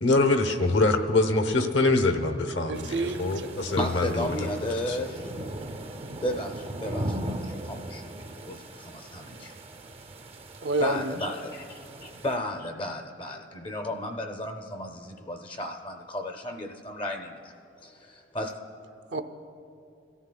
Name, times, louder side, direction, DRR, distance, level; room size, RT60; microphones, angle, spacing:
voice 1, 0.0-4.5 4.9-5.0, left 2 dB, 70° left, 7 dB, 0.9 m, -24 dB
sound 1, 2.7-12.4, right 1 dB, 30° right, 0.4 m, -38 dB
voice 2, 2.7-3.5 10.6-11.1 19.1-19.2, right 2 dB, 70° right, 8 dB, 0.6 m, -28 dB
voice 3, 3.8-5.3 6.2-9.5 10.8-17.5 17.8-18.6, left 1 dB, 25° left, 3 dB, 0.5 m, -34 dB
22.0 x 13.5 x 2.2 m, 2.7 s
head